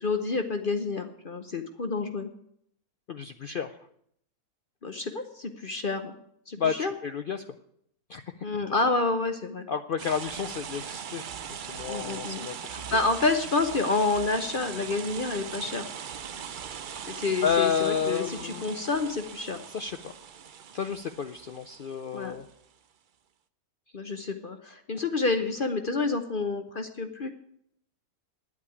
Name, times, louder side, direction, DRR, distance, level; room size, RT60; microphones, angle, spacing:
voice 1, 0.0-2.3 4.8-6.1 6.5-6.9 8.4-9.7 11.9-15.8 17.1-19.6 22.1-22.3 23.9-27.3, left 3 dB, 45° left, 7 dB, 0.8 m, -29 dB
voice 2, 3.1-3.7 6.5-7.4 8.1-8.2 9.7-11.2 11.5-12.6 17.4-18.8 19.7-20.1 20.7-22.4, left 7 dB, 90° left, 9 dB, 0.4 m, -30 dB
Medium Suburban Stream, 10.0-22.5, right 7 dB, 65° right, 0.5 m, -40 dB
10.0 x 8.5 x 9.6 m, 0.71 s
omnidirectional pair, 1.6 m